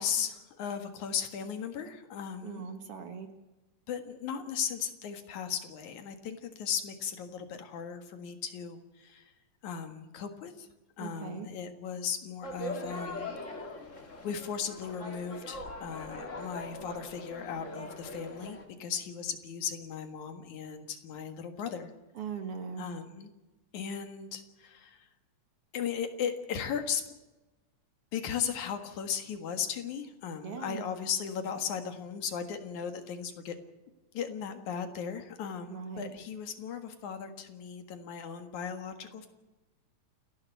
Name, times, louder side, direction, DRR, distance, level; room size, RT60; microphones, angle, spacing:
voice 1, 0.0-2.7 3.9-9.3 9.6-10.7 11.0-13.6 14.2-21.9 22.8-23.3 23.7-25.1 25.7-27.1 28.1-33.6 34.1-39.3, left 7 dB, 75° left, 7 dB, 3.1 m, -37 dB
voice 2, 2.4-3.3 11.0-11.5 22.2-22.9 30.4-30.8 35.7-36.1, right 6 dB, 55° right, 7 dB, 2.2 m, -40 dB
sound 1, 12.4-18.6, left 2 dB, 25° left, 2.1 m, -41 dB
29.0 x 10.5 x 8.3 m, 1.1 s
omnidirectional pair, 3.5 m